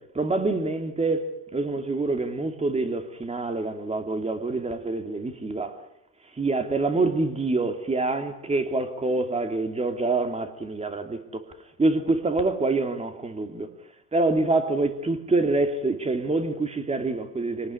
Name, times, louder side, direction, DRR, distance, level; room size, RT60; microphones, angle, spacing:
voice 1, 0.1-5.8 6.3-11.5 11.8-13.7 14.1-17.7, right 3 dB, 20° right, 2.8 m, -26 dB
26.0 x 19.0 x 9.8 m
cardioid pair, 120°, 34 cm